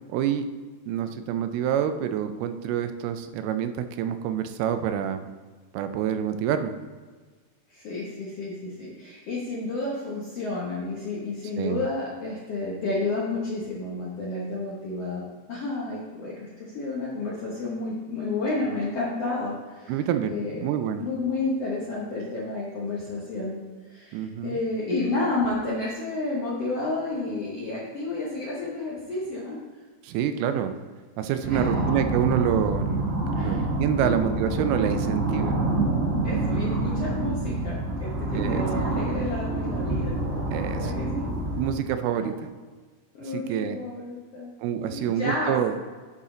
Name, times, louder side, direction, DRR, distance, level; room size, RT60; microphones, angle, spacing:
voice 1, 0.1-0.5 0.9-5.2 5.7-6.7 11.6-11.9 19.9-21.1 24.1-24.6 30.0-30.7 31.2-35.5 38.3-38.6 40.5-40.9 41.6-42.5 43.3-43.8 44.6-45.7, right 9 dB, 90° right, 9 dB, 2.5 m, -27 dB
voice 2, 7.7-15.2 15.5-20.0 20.2-20.6 21.0-29.6 30.5-30.6 31.4-31.8 33.3-33.7 34.0-34.2 36.2-40.2 40.7-41.3 42.2-42.4 43.1-44.5 44.9-45.5, left 2 dB, 70° left, -6 dB, 1.5 m, -31 dB
sound 1, 31.5-41.7, right 2 dB, 45° right, 0.9 m, -27 dB
11.0 x 4.3 x 3.8 m, 1.4 s
omnidirectional pair, 4.3 m